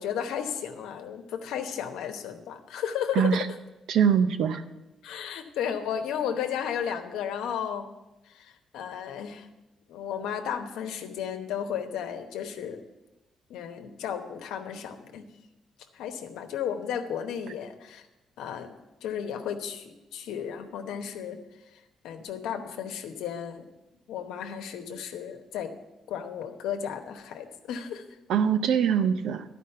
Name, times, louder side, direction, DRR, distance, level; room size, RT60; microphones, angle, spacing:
voice 1, 0.0-3.4 5.0-7.9 8.3-9.5 9.9-12.8 13.5-15.3 15.9-18.1 18.4-18.7 19.0-21.4 22.0-23.7 24.1-25.7 26.1-28.0, left 8 dB, 90° left, 6 dB, 0.9 m, -34 dB
voice 2, 3.9-4.6 28.3-29.4, right 7 dB, 80° right, 10 dB, 0.6 m, -23 dB
11.5 x 5.1 x 6.6 m, 1.0 s
cardioid pair, 90°, 0 cm